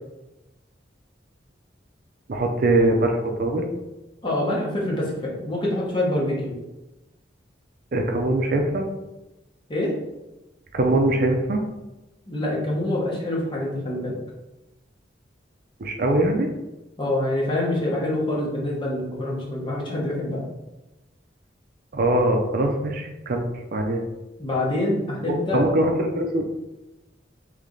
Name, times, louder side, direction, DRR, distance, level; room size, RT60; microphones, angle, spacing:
voice 1, 2.3-3.7 7.9-8.9 10.7-11.6 15.8-16.5 21.9-24.0 25.5-26.4, right 1 dB, 50° right, 3 dB, 0.5 m, -22 dB
voice 2, 4.2-6.6 9.7-9.9 12.3-14.1 17.0-20.4 24.4-25.6, left 1 dB, 25° left, -4 dB, 1.1 m, -25 dB
3.3 x 3.2 x 3.8 m, 1.0 s
head